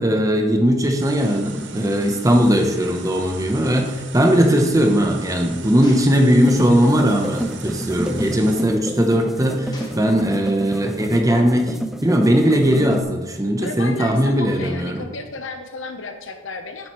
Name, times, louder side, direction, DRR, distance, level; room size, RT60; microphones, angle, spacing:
voice 1, 0.0-11.7 12.0-15.0, equal, 15° right, 4 dB, 0.8 m, -18 dB
sound 1, 1.0-8.6, right 5 dB, 65° right, 0.7 m, -38 dB
Gunshot gunfire, 3.5-3.6 3.8-4.0 5.8-6.8 7.6-7.8 9.7-10.6, left 1 dB, 20° left, 1.2 m, -43 dB
sound 2, 6.3-13.0, right 1 dB, ahead, 0.4 m, -30 dB
voice 2, 13.6-16.9, left 3 dB, 90° left, 5 dB, 1.0 m, -33 dB
8.9 x 7.6 x 3.1 m, 1.2 s
head